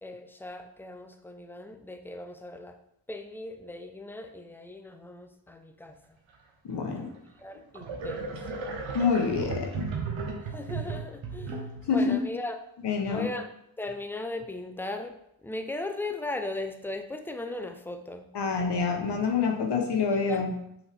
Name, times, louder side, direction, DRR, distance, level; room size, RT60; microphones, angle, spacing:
voice 1, 0.0-2.8 3.1-5.9 7.0-7.1 7.4-8.6 10.5-11.6 11.9-12.6 13.1-13.5 13.8-15.1 15.4-18.3 20.3-20.5, left 2 dB, 5° left, 6 dB, 0.5 m, -37 dB
voice 2, 6.6-7.1 8.9-9.8 11.9-12.2 12.8-13.3 18.3-20.5, left 5 dB, 60° left, 3 dB, 1.0 m, -26 dB
sound 1, 7.0-7.1 7.7-12.0, right 4 dB, 75° right, 1.0 m, -35 dB
5.7 x 2.7 x 3.4 m, 0.76 s
supercardioid pair, 40°, 48 cm